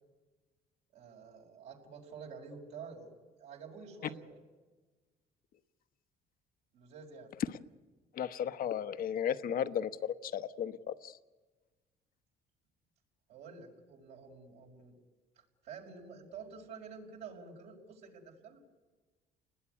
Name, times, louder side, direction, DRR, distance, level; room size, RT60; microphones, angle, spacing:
voice 1, 0.9-3.1 3.4-4.4 6.7-7.3 13.3-14.9 15.4-18.6, right 5 dB, 80° right, 0 dB, 5.5 m, -49 dB
voice 2, 8.1-11.2, left 9 dB, 60° left, 11 dB, 1.0 m, -35 dB
29.5 x 20.0 x 9.8 m, 1.3 s
cardioid pair, 110°, 17 cm